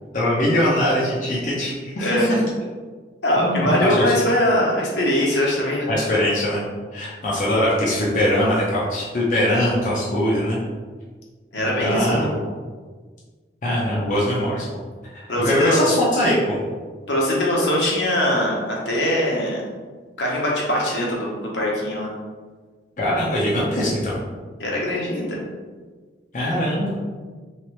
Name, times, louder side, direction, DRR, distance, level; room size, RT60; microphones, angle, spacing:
voice 1, 0.1-2.4 3.3-4.1 5.9-6.6 6.9-10.6 11.6-12.3 13.6-14.7 15.1-16.6 23.0-24.2 26.3-27.0, left 1 dB, 45° left, -6 dB, 0.6 m, -21 dB
voice 2, 2.0-2.5 3.2-5.9 11.5-12.3 15.3-15.8 17.1-19.6 20.2-22.1 24.6-25.4, left 1 dB, 75° left, -3 dB, 0.9 m, -22 dB
3.2 x 3.1 x 3.0 m, 1.5 s
head